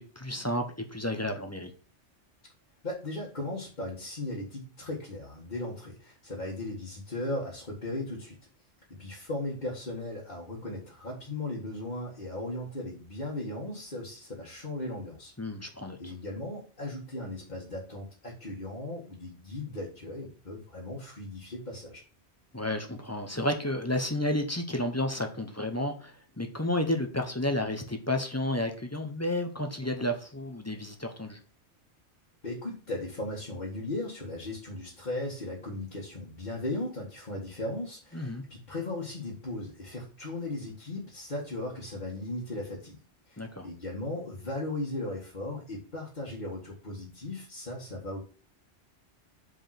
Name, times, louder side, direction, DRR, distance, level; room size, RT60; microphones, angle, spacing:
voice 1, 0.0-1.7 15.4-16.1 22.5-31.4 38.1-38.4 43.4-43.7, left 1 dB, 15° left, 5 dB, 0.8 m, -31 dB
voice 2, 2.8-8.4 9.0-15.3 16.0-22.0 32.4-43.0 43.3-48.2, left 2 dB, 40° left, -6 dB, 1.9 m, -37 dB
5.3 x 4.9 x 5.8 m, 0.38 s
omnidirectional pair, 1.2 m